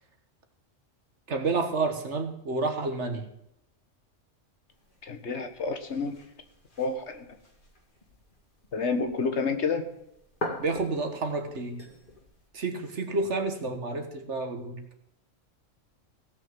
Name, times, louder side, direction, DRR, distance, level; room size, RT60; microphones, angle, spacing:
voice 1, 1.3-3.3 10.6-11.8 12.5-14.8, right 3 dB, 65° right, 6 dB, 1.8 m, -30 dB
sound 1, 4.7-12.5, left 1 dB, 40° left, 2.3 m, -44 dB
voice 2, 5.0-6.2 6.8-7.3 8.7-9.8, left 4 dB, 60° left, 7 dB, 1.5 m, -29 dB
17.0 x 6.3 x 7.5 m, 0.80 s
omnidirectional pair, 1.3 m